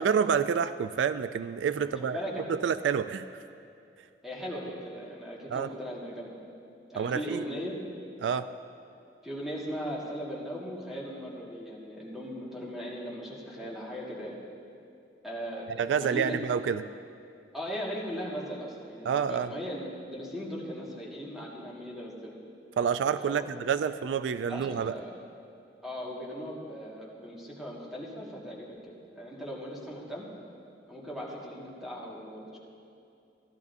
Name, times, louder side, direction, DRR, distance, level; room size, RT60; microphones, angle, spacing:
voice 1, 0.0-2.2 2.5-3.3 5.5-5.7 7.0-7.5 8.2-8.5 15.8-16.8 19.0-19.5 22.8-25.0, right 7 dB, 80° right, 13 dB, 0.3 m, -28 dB
voice 2, 1.8-2.5 4.2-6.4 6.9-7.7 9.2-14.4 15.2-16.4 17.5-22.3 23.2-23.5 24.5-25.1 25.8-30.3 30.9-32.6, equal, ahead, -5 dB, 1.8 m, -38 dB
15.5 x 12.0 x 2.7 m, 2.6 s
head